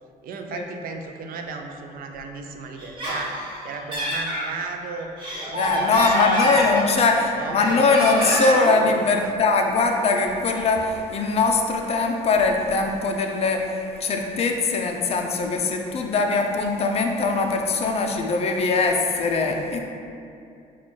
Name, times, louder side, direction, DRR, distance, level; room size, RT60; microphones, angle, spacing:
voice 1, 0.2-5.1 5.6-7.0 7.4-7.8 8.8-9.4, right 4 dB, 60° right, 4 dB, 0.4 m, -35 dB
Laughter, 2.8-4.5 5.0-7.2 7.6-8.7, equal, 30° right, 1.4 m, -26 dB
voice 2, 5.5-19.8, left 3 dB, 40° left, 3 dB, 0.5 m, -21 dB
4.4 x 2.3 x 4.2 m, 2.5 s
cardioid pair, 110°, 17 cm